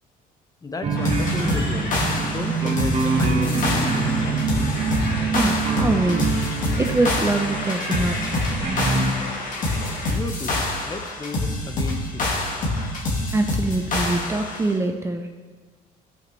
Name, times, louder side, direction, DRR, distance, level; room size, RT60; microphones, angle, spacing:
voice 1, 0.6-4.6 10.1-12.4, left 3 dB, 20° left, 6 dB, 0.7 m, -34 dB
sound 1, 0.8-9.1, right 4 dB, 35° right, 1.1 m, -25 dB
sound 2, 0.9-10.2, left 2 dB, 70° left, 1.7 m, -34 dB
sound 3, 1.0-14.6, left 2 dB, 50° left, 1.8 m, -26 dB
voice 2, 5.3-6.5 6.8-8.2 13.3-15.3, right 2 dB, 15° right, 4 dB, 0.5 m, -24 dB
14.5 x 5.2 x 3.1 m, 1.5 s
cardioid pair, 110°, 17 cm